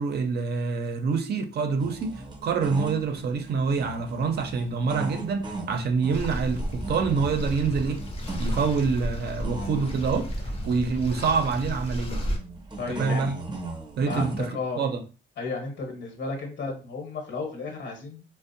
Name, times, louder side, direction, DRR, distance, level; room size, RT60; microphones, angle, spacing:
voice 1, 0.0-8.0 8.4-10.3 10.7-12.2 12.9-13.3 14.0-14.5 14.8-15.0, right 5 dB, 55° right, 0.5 m, -26 dB
sound 1, 1.8-14.5, right 2 dB, 20° right, 0.7 m, -39 dB
sound 2, 6.1-12.4, equal, 30° left, 0.6 m, -32 dB
voice 2, 12.8-13.4 14.1-14.9 15.4-18.2, left 3 dB, 65° left, 1.1 m, -33 dB
2.5 x 2.0 x 2.6 m
cardioid pair, 90°, 20 cm